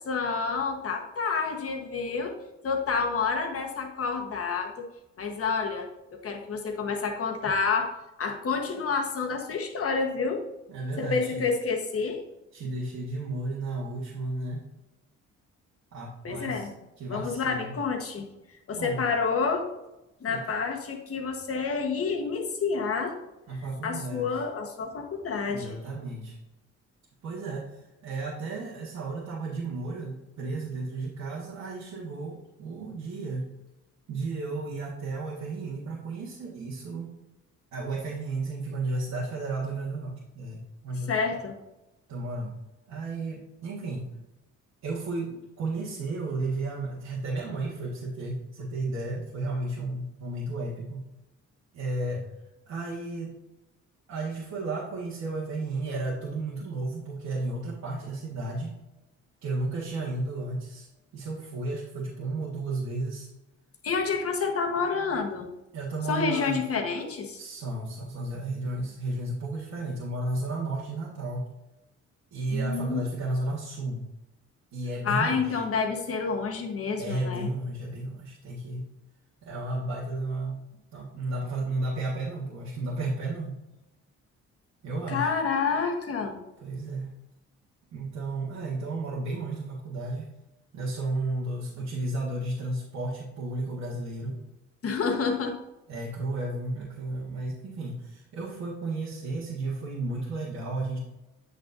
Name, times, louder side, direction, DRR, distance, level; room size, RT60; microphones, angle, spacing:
voice 1, 0.0-2.3 2.6-4.9 5.2-5.9 6.2-10.4 11.0-12.2 16.2-16.7 17.1-18.3 18.7-19.7 20.2-23.2 23.8-25.7 41.1-41.6 63.8-65.5 66.1-67.4 72.5-73.0 75.0-77.5 85.1-86.4 94.8-95.6, left 5 dB, 50° left, 3 dB, 1.3 m, -29 dB
voice 2, 10.7-11.4 12.5-14.6 15.9-16.7 17.0-17.7 18.7-19.0 20.3-20.6 23.5-24.3 25.5-26.4 27.2-33.5 34.1-37.1 37.7-41.1 42.1-42.6 42.9-44.1 44.8-51.0 51.7-52.2 52.7-53.4 54.1-58.8 59.4-60.9 61.1-63.3 65.7-66.6 67.4-71.4 72.3-74.1 74.7-75.6 77.0-78.8 79.4-80.6 80.9-83.6 84.8-85.3 86.6-87.2 87.9-90.3 90.7-94.4 95.9-101.0, right 2 dB, 70° right, -6 dB, 1.7 m, -33 dB
8.0 x 6.3 x 2.7 m, 0.97 s
cardioid pair, 90°, 30 cm